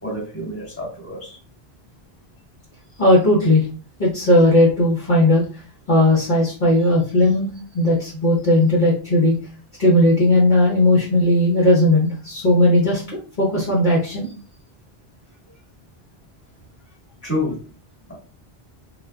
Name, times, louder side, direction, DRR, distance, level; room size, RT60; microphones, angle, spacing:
voice 1, 0.0-1.4 17.2-17.6, left 1 dB, 10° left, -3 dB, 1.4 m, -28 dB
voice 2, 3.0-3.7 4.0-5.6 5.9-7.5 7.7-9.3 9.8-14.2, left 1 dB, 50° left, -4 dB, 0.9 m, -17 dB
3.7 x 2.3 x 2.2 m, 0.37 s
omnidirectional pair, 1.1 m